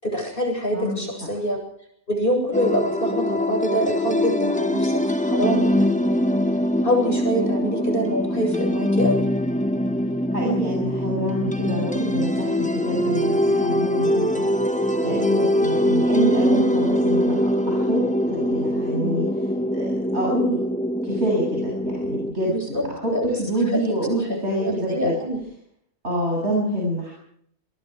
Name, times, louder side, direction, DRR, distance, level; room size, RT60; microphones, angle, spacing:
voice 1, 0.0-1.6 2.1-6.2 6.8-9.3 22.5-23.3 23.7-23.8 24.2-24.3 24.6-25.4, equal, 35° left, 2 dB, 8.0 m, -25 dB
voice 2, 0.7-1.3 10.3-14.5 15.0-19.3 19.7-20.6 21.0-25.2 26.0-27.1, equal, 45° right, -2 dB, 8.1 m, -27 dB
sound 1, 2.5-22.3, equal, 5° left, 1.5 m, -23 dB
28.5 x 22.5 x 4.8 m, 0.68 s
omnidirectional pair, 1.5 m